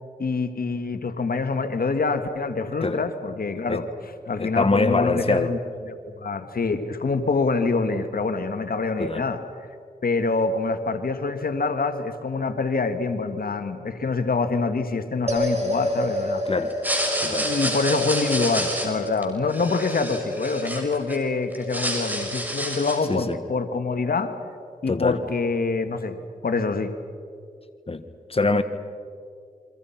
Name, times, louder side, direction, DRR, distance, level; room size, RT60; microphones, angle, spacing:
voice 1, 0.2-3.8 4.3-5.6 5.8-9.4 10.0-16.4 17.4-24.3 24.8-26.2 26.4-26.9, left 4 dB, 70° left, 8 dB, 1.7 m, -25 dB
voice 2, 4.4-5.5 9.0-9.2 16.4-16.7 17.2-17.5 23.1-23.3 24.9-25.2 27.9-28.0 28.3-28.6, left 3 dB, 35° left, 9 dB, 1.5 m, -23 dB
sound 1, 15.3-25.7, left 1 dB, 45° right, 7.1 m, -32 dB
sound 2, 16.7-21.2 21.5-23.1, equal, 10° right, 6.4 m, -29 dB
29.5 x 24.0 x 5.9 m, 2.2 s
cardioid pair, 45°, 16 cm